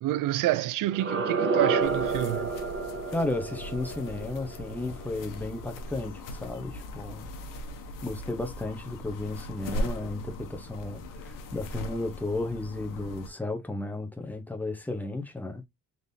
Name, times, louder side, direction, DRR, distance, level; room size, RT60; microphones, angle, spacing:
voice 1, 0.0-2.5, right 15 dB, 80° right, 0.5 m, -28 dB
sound 1, 0.9-5.8, right 4 dB, 40° right, 1.1 m, -30 dB
sound 2, 1.8-13.3, left 1 dB, 85° left, 1.0 m, -39 dB
voice 2, 3.1-7.3 8.0-15.6, left 2 dB, 5° left, 0.8 m, -34 dB
3.9 x 3.4 x 2.6 m
cardioid pair, 145°, 32 cm